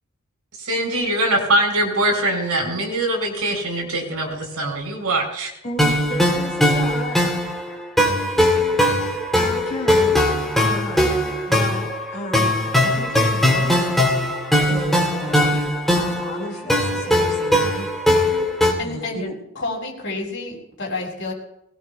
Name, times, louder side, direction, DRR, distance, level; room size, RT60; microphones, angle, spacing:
voice 1, 0.6-5.5, right 1 dB, 85° right, 1 dB, 5.1 m, -22 dB
voice 2, 5.6-7.4 9.3-10.2 10.5-11.2 11.5-13.8 14.2-15.6 15.9-17.9 18.8-19.3, equal, 30° left, -5 dB, 6.5 m, -32 dB
sound 1, 5.8-18.7, left 1 dB, ahead, 3.2 m, -20 dB
voice 3, 18.8-19.2 19.5-21.3, left 3 dB, 55° left, -2 dB, 6.2 m, -29 dB
22.5 x 19.5 x 2.4 m, 0.78 s
head